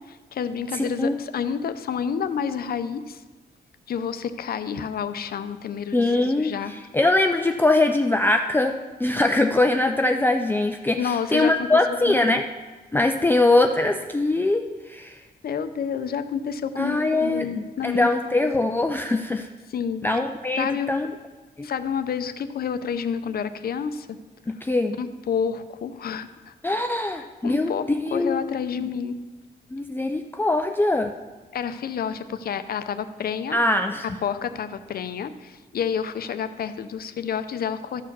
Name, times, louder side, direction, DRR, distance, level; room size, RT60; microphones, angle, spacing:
voice 1, 0.1-3.2 3.9-6.7 11.0-11.7 12.1-12.2 15.4-18.1 18.6-18.7 19.7-20.0 20.6-20.9 21.6-24.2 25.0-26.5 27.4-29.2 31.5-33.6 34.0-38.0, left 7 dB, 65° left, 10 dB, 0.6 m, -29 dB
voice 2, 0.7-1.2 5.9-8.7 9.0-12.5 12.9-15.2 16.8-19.5 20.0-21.2 21.6-21.7 24.5-24.9 26.6-27.7 28.0-28.5 28.8-28.9 29.7-31.1 33.5-34.0, left 2 dB, 10° left, 4 dB, 0.4 m, -22 dB
13.0 x 4.7 x 6.0 m, 1.3 s
wide cardioid pair, 140°, 17 cm